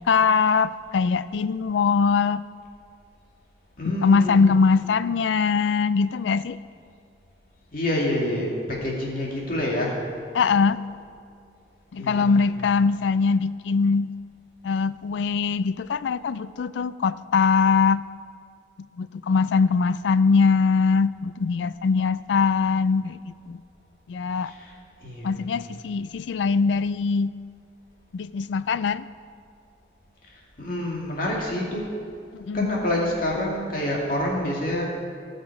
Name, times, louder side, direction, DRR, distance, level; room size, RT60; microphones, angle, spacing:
voice 1, 0.1-2.4 3.8-6.6 10.3-10.8 11.9-14.1 14.6-18.1 19.0-23.2 23.5-23.6 24.1-24.5 25.2-27.4 28.1-29.1 32.3-32.7, left 5 dB, 85° left, 16 dB, 0.4 m, -22 dB
voice 2, 3.8-4.4 7.7-10.0 12.0-12.4 24.4-24.7 25.0-25.5 30.6-31.9 32.5-34.9, left 1 dB, 50° left, -2 dB, 2.4 m, -27 dB
18.5 x 6.7 x 4.7 m, 2.4 s
head